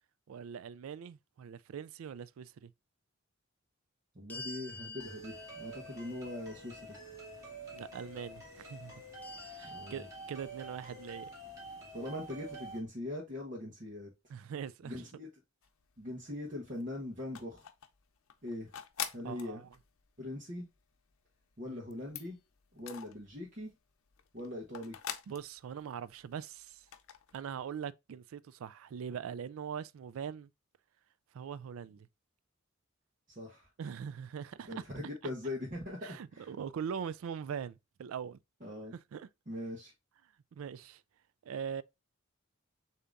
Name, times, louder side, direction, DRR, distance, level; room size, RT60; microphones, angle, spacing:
voice 1, 0.3-2.7 7.7-8.9 9.4-11.3 14.3-15.0 19.2-19.7 21.7-21.8 25.3-26.9 27.3-30.5 31.3-32.1 33.8-34.8 36.0-38.4 39.1-39.3 40.5-41.0 41.4-41.8, right 7 dB, 70° right, 0.3 m, -42 dB
voice 2, 4.1-6.9 9.6-10.0 11.9-14.1 14.8-15.3 16.0-17.7 18.4-18.7 19.1-19.7 20.2-20.6 21.6-22.4 22.7-23.7 24.3-25.0 33.3-33.7 34.7-36.5 38.6-38.9 39.5-39.9, left 1 dB, 40° right, 1.2 m, -41 dB
sound 1, 4.3-7.4 9.2-11.0, left 2 dB, 10° left, 0.4 m, -50 dB
sound 2, 5.0-12.8, right 2 dB, 15° right, 2.2 m, -48 dB
sound 3, 15.6-16.3 16.6-23.7 24.1-26.4 26.7-27.4, left 9 dB, 85° left, 0.6 m, -45 dB
6.7 x 2.9 x 2.5 m
head